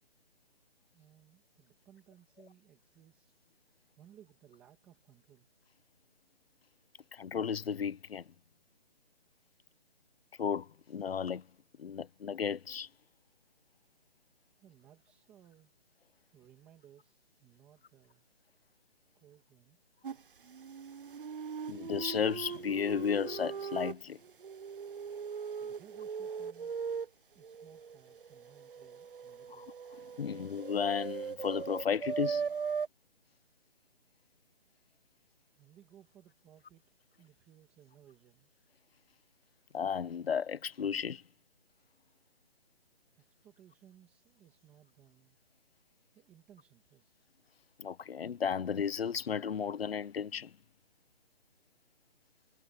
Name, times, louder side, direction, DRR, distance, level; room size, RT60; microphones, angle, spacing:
voice 1, 0.9-3.3 3.9-5.5 14.6-15.8 16.3-18.2 19.1-19.8 25.6-26.8 27.3-29.7 33.3-33.4 35.4-38.5 43.1-45.4 46.1-47.3, right 10 dB, 5° right, 2.0 m, -61 dB
voice 2, 7.1-8.3 10.4-11.5 11.8-12.9 21.7-24.2 29.6-29.7 30.2-32.5 39.7-41.2 47.8-50.5, left 7 dB, 70° left, 0.7 m, -34 dB
sound 1, 20.0-20.2 20.5-23.9 24.2-27.1 27.4-32.9, right 6 dB, 55° right, 0.6 m, -39 dB
hypercardioid pair, 180°, 31 cm